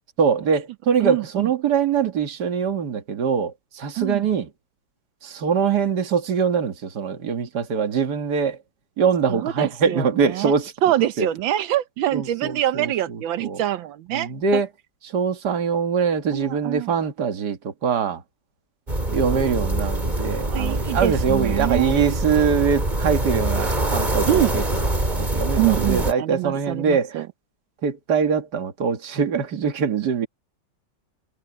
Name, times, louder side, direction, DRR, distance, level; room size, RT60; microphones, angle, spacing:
voice 1, 0.2-4.5 5.2-8.6 9.0-10.7 11.2-11.3 12.1-13.6 14.1-14.7 15.1-18.2 19.1-24.6 25.1-27.2 27.8-30.3, right 6 dB, 60° right, 2.3 m, -23 dB
voice 2, 1.0-1.5 4.0-4.3 9.3-10.5 10.8-14.6 16.3-16.9 19.3-19.6 20.5-22.2 24.3-24.5 25.6-27.3, right 13 dB, 90° right, 1.6 m, -25 dB
sound 1, 18.9-26.1, right 1 dB, 20° right, 4.0 m, -24 dB
omnidirectional pair, 2.1 m